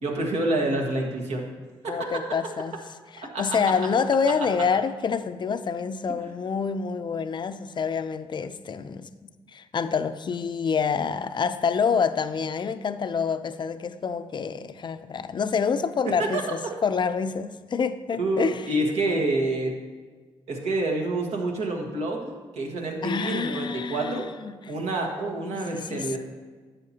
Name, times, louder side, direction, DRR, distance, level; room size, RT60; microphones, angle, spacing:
voice 1, 0.0-1.5 1.8-2.1 3.3-3.4 16.0-16.4 18.2-19.7 20.5-24.3 24.7-26.2, right 2 dB, 70° right, 1 dB, 1.6 m, -27 dB
voice 2, 1.9-2.7 3.1-18.7 23.0-24.7 25.4-26.2, left 6 dB, 45° left, 11 dB, 0.5 m, -27 dB
10.5 x 7.6 x 2.9 m, 1.4 s
supercardioid pair, 55°, 11 cm